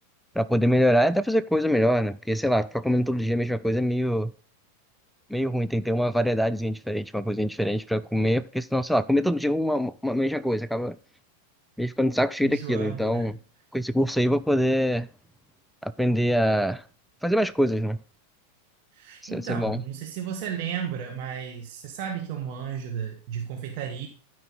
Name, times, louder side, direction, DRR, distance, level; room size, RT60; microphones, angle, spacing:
voice 1, 0.4-4.3 5.3-11.0 11.8-13.3 13.7-15.1 15.8-16.8 17.2-18.0 19.2-19.8, equal, ahead, 0.4 m, -24 dB
voice 2, 12.4-13.4 18.9-24.1, right 8 dB, 45° right, 1.5 m, -34 dB
12.5 x 5.4 x 3.9 m
figure-of-eight pair, 90°, 0 cm